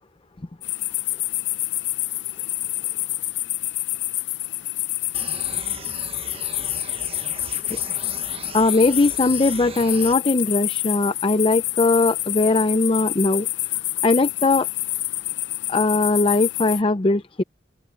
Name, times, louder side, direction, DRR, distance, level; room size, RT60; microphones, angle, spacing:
sound 1, 0.6-16.8, left 17 dB, 75° left, 0.6 m, -28 dB
sound 2, 5.1-10.1, right 4 dB, 30° right, 0.8 m, -39 dB
voice 1, 8.5-13.5 14.0-14.7 15.7-17.4, left 3 dB, 30° left, 0.6 m, -20 dB
open air
head